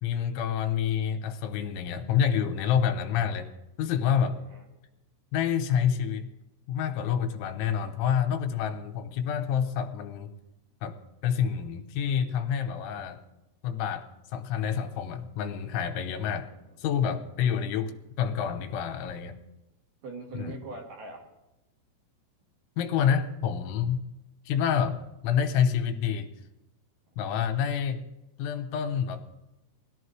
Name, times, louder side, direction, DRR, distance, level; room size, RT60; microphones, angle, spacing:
voice 1, 0.0-3.5 3.8-4.4 5.3-6.3 6.7-10.3 10.8-13.2 13.6-16.5 16.8-17.9 18.2-19.4 20.3-20.5 22.8-24.0 24.5-26.3 27.2-28.1 28.4-29.2, left 8 dB, 85° left, 7 dB, 3.1 m, -28 dB
voice 2, 16.4-16.8 17.4-17.6 20.0-21.3 27.3-27.5, right 3 dB, 60° right, 1 dB, 2.5 m, -43 dB
20.5 x 12.5 x 3.2 m, 0.96 s
omnidirectional pair, 5.5 m